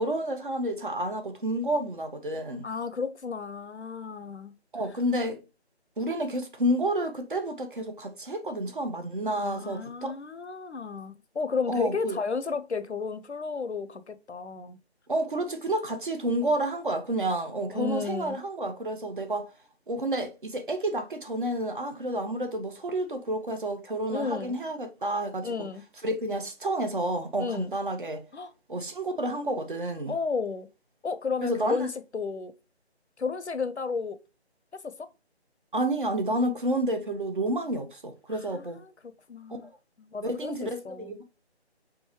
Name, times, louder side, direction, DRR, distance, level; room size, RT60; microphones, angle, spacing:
voice 1, 0.0-2.7 4.7-5.4 6.0-10.1 11.7-12.2 15.1-19.5 19.9-25.7 26.0-28.2 28.7-30.2 31.4-31.9 35.7-38.8 39.5-39.6 40.2-41.2, right 1 dB, 50° right, 0.8 m, -30 dB
voice 2, 2.6-4.5 9.4-14.8 17.7-18.4 24.1-24.6 25.4-25.8 27.4-27.7 28.3-28.5 30.1-30.7 31.0-32.5 33.2-34.2 34.7-35.1 38.3-39.7 40.0-41.2, left 5 dB, 85° left, 0.6 m, -33 dB
4.6 x 2.6 x 2.9 m
figure-of-eight pair, 155°, 33 cm